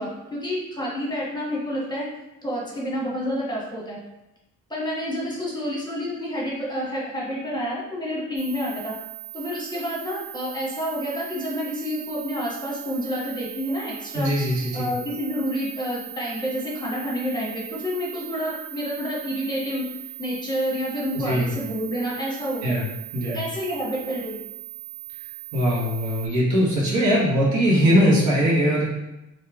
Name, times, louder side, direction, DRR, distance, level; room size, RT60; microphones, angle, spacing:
voice 1, 0.0-2.0 2.4-4.0 4.7-8.9 9.3-14.3 14.7-22.8 23.2-24.4, equal, 15° left, -5 dB, 1.1 m, -29 dB
sound 1, 8.4-26.3, right 18 dB, 25° right, 1.2 m, -40 dB
voice 2, 14.1-14.9 21.1-21.5 22.6-22.9 23.1-23.4 25.5-28.8, equal, 70° right, -5 dB, 1.3 m, -21 dB
3.1 x 2.7 x 3.5 m, 0.93 s
cardioid pair, 90°, 30 cm